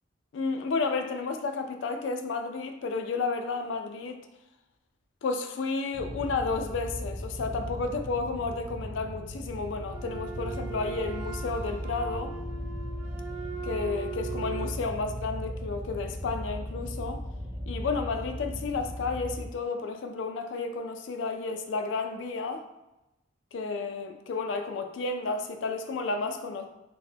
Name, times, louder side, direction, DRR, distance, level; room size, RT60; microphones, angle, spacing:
voice 1, 0.3-4.2 5.2-12.3 13.6-17.2 17.7-22.6 23.5-26.7, left 4 dB, 70° left, 6 dB, 0.4 m, -32 dB
sound 1, 5.9-19.5, equal, 5° right, 0.7 m, -37 dB
Wind instrument woodwind instrument, 9.9-14.8, right 7 dB, 85° right, 0.5 m, -40 dB
3.9 x 2.1 x 2.7 m, 0.95 s
head